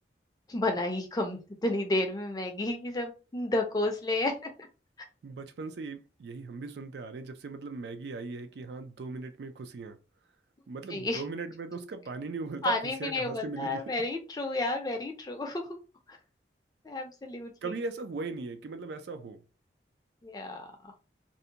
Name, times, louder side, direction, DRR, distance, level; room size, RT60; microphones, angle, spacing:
voice 1, 0.5-4.5 10.9-11.2 12.6-15.8 16.1-16.2 16.8-17.8 20.2-20.9, left 2 dB, 20° left, 0.4 m, -31 dB
voice 2, 5.2-10.0 10.7-13.8 17.6-19.4, right 4 dB, 70° right, 0.4 m, -39 dB
2.6 x 2.1 x 2.7 m
head